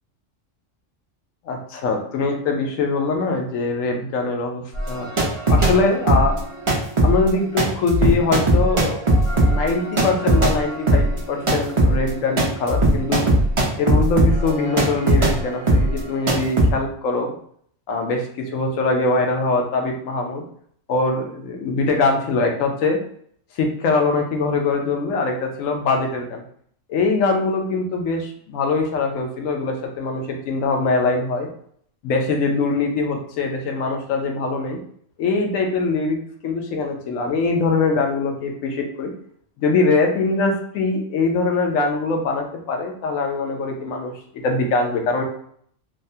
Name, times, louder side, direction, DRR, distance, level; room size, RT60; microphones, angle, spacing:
voice 1, 1.5-5.1 5.5-6.4 7.0-9.0 9.3-13.3 13.8-17.4 17.9-20.4 20.9-23.0 23.5-26.4 26.9-31.5 32.0-34.8 35.2-39.1 39.6-44.1 44.4-45.2, left 3 dB, 85° left, 2 dB, 1.0 m, -22 dB
sound 1, 4.7-5.8 6.0-15.4 15.7-16.0 16.3-16.7, right 1 dB, 40° right, 0.4 m, -19 dB
3.3 x 2.1 x 2.6 m, 0.62 s
omnidirectional pair, 1.3 m